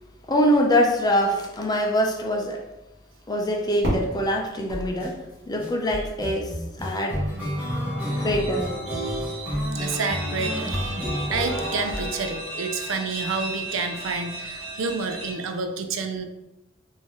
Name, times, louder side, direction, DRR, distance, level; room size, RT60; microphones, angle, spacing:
voice 1, 0.3-2.6 3.3-7.2 8.2-8.7 11.0-11.3, equal, 20° left, 1 dB, 0.5 m, -24 dB
Fireworks, 3.8-6.7, equal, 55° right, 1.4 m, -32 dB
sound 1, 4.7-5.1 5.6-12.8, equal, 10° right, 1.0 m, -30 dB
sound 2, 8.0-15.3, right 1 dB, 30° right, 1.5 m, -36 dB
voice 2, 8.9-9.3 9.7-16.2, right 4 dB, 85° right, 6 dB, 0.4 m, -29 dB
3.7 x 2.6 x 3.1 m, 0.95 s
head